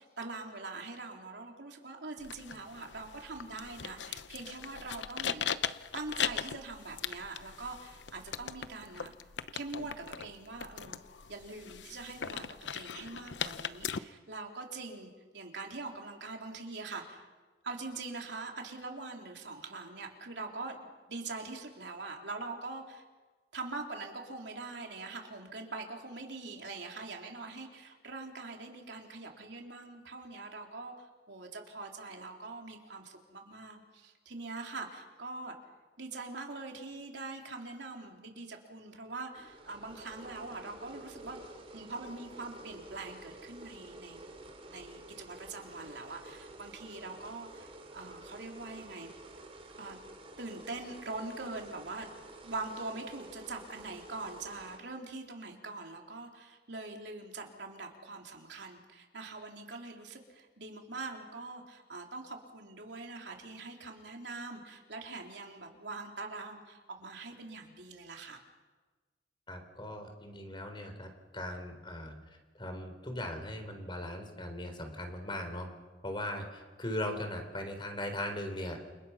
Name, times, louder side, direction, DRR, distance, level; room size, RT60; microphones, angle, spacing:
voice 1, 0.0-5.5 5.9-9.1 9.5-11.0 11.3-17.3 17.6-20.8 21.1-23.0 23.5-35.6 36.0-44.2 44.7-49.1 49.8-50.0 50.4-68.4, right 3 dB, 75° right, 2 dB, 3.6 m, -43 dB
sound 1, 2.2-14.0, left 8 dB, 90° left, 0.8 m, -39 dB
sound 2, 39.3-54.8, right 2 dB, 35° right, 3.6 m, -50 dB
voice 2, 69.5-71.1 71.3-72.1 72.5-75.7 76.0-78.8, left 1 dB, 30° left, 6 dB, 3.9 m, -39 dB
29.5 x 27.0 x 5.8 m, 1.3 s
head